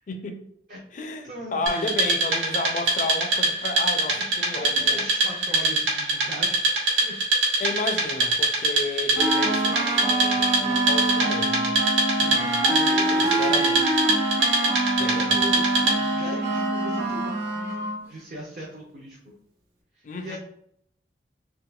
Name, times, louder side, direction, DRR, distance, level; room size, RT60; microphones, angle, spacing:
voice 1, 0.1-0.4 0.9-5.0 7.6-11.8 12.3-12.6 13.2-14.2 15.0-15.4 20.0-20.4, left 2 dB, 45° left, 0.4 m, -32 dB
voice 2, 1.2-2.0 4.1-4.2 4.5-6.6 7.0-7.1 12.2-13.7 15.0-19.3 20.0-20.4, equal, 50° right, 0.7 m, -38 dB
Wood, 1.7-16.2, right 2 dB, 85° right, 1.0 m, -24 dB
sound 1, 9.1-18.0, right 2 dB, 70° right, 1.2 m, -25 dB
3.6 x 2.6 x 2.2 m
head